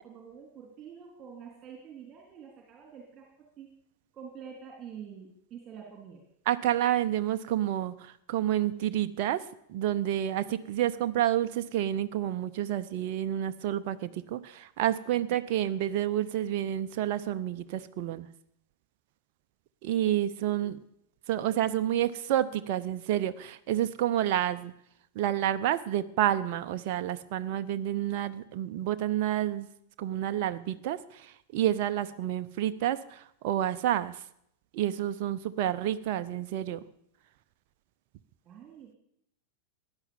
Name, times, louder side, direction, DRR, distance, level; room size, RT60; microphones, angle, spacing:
voice 1, 0.0-3.7 4.1-6.2 38.4-39.0, right 7 dB, 30° right, 0 dB, 3.3 m, -47 dB
voice 2, 6.5-18.3 19.8-20.8 21.3-24.7 25.1-29.7 30.0-34.2 34.7-36.8, right 12 dB, 45° right, 10 dB, 0.7 m, -29 dB
15.5 x 10.5 x 7.2 m, 0.74 s
figure-of-eight pair, 90°, 0 cm